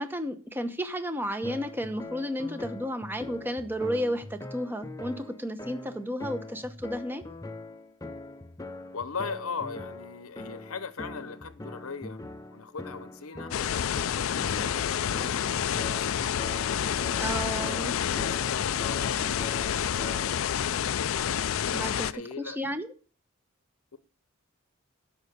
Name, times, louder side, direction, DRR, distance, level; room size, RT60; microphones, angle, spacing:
voice 1, 0.0-7.2 17.2-17.9 21.7-22.1 22.4-22.9, equal, 10° right, 0.9 m, -32 dB
sound 1, 1.4-20.5, left 2 dB, 15° left, 0.6 m, -42 dB
voice 2, 8.9-12.2 12.5-13.5 14.3-16.3 17.9-19.9 21.7-22.6, left 5 dB, 90° left, 0.9 m, -39 dB
sound 2, 13.5-22.1, left 9 dB, 70° left, 0.4 m, -28 dB
12.0 x 5.3 x 6.7 m
head